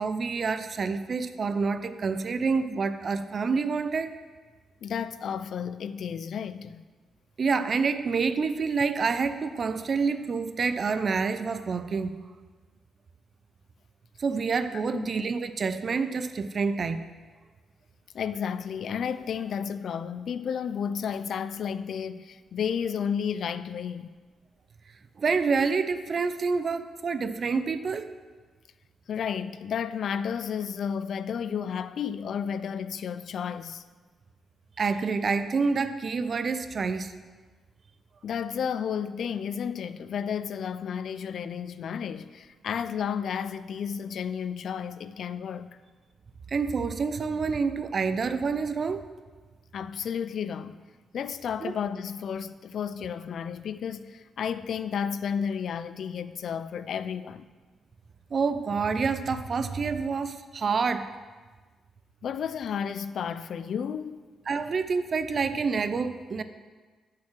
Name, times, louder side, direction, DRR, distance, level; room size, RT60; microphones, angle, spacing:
voice 1, 0.0-4.1 7.4-12.2 14.2-17.0 25.2-28.1 34.8-37.1 46.5-49.1 51.6-51.7 58.3-61.1 64.5-66.4, right 5 dB, 40° right, 0.4 m, -27 dB
voice 2, 4.8-6.8 14.9-15.1 18.1-24.1 29.1-33.8 38.2-45.7 49.7-50.8 51.1-57.5 62.2-64.3, left 7 dB, 60° left, 0.3 m, -32 dB
6.9 x 5.4 x 5.9 m
cardioid pair, 130°, 0 cm